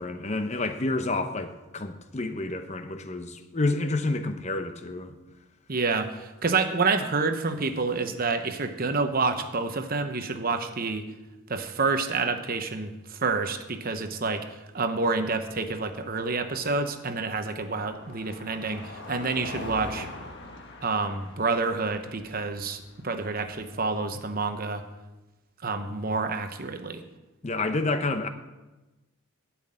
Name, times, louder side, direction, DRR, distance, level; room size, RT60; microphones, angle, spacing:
voice 1, 0.0-5.2 27.4-28.3, left 2 dB, 35° left, 8 dB, 0.8 m, -29 dB
voice 2, 5.7-11.1 11.5-20.1 20.8-24.8 25.6-27.0, right 4 dB, 45° right, 8 dB, 0.9 m, -28 dB
Car passing by, 15.7-23.8, left 2 dB, 55° left, 1.4 m, -44 dB
12.5 x 6.0 x 8.8 m, 1.1 s
head